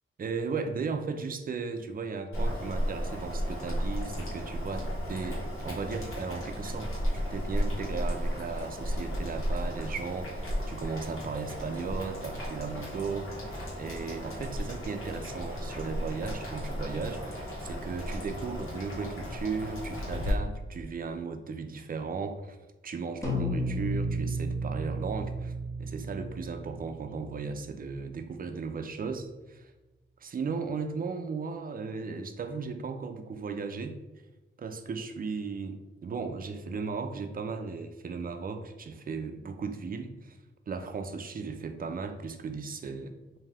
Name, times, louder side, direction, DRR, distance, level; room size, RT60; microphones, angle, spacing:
voice 1, 0.2-22.6 22.8-25.5 25.8-29.7 30.2-34.0 34.6-40.4 40.7-43.1, right 4 dB, 45° right, 7 dB, 0.4 m, -36 dB
Boiling, 2.3-20.3, equal, 90° left, 1.4 m, -34 dB
sound 1, 23.2-27.8, right 1 dB, 15° left, 0.8 m, -33 dB
3.5 x 2.7 x 3.4 m, 1.1 s
wide cardioid pair, 100°, 21 cm